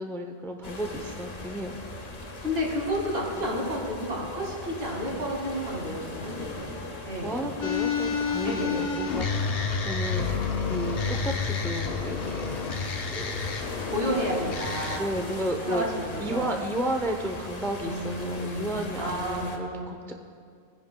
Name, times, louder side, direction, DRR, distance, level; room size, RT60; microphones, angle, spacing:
voice 1, 0.0-1.8 7.2-12.6 13.1-13.4 14.1-14.3 14.9-20.1, right 1 dB, 5° left, 3 dB, 0.5 m, -33 dB
sound 1, 0.6-19.6, left 2 dB, 40° left, 1.0 m, -40 dB
voice 2, 2.4-6.7 7.1-7.5 8.4-8.9 13.9-16.5 17.8-19.9, equal, 70° right, -2 dB, 2.5 m, -31 dB
sound 2, 7.6-15.0, left 5 dB, 65° left, 1.0 m, -29 dB
19.5 x 10.0 x 2.3 m, 2.2 s
omnidirectional pair, 1.1 m